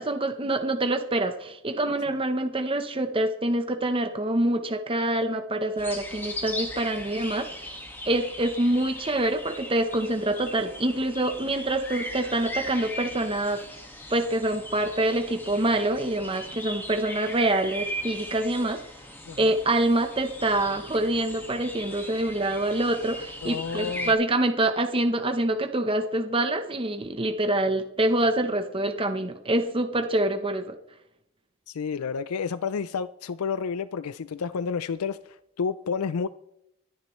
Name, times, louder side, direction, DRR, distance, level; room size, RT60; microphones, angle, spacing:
voice 1, 0.0-13.8 14.1-18.8 19.4-30.7, right 1 dB, 25° right, 0.8 m, -26 dB
sound 1, 5.8-24.1, left 1 dB, 10° left, 1.7 m, -39 dB
voice 2, 23.4-24.1 31.7-36.3, left 6 dB, 85° left, 0.4 m, -30 dB
24.5 x 10.5 x 3.1 m
head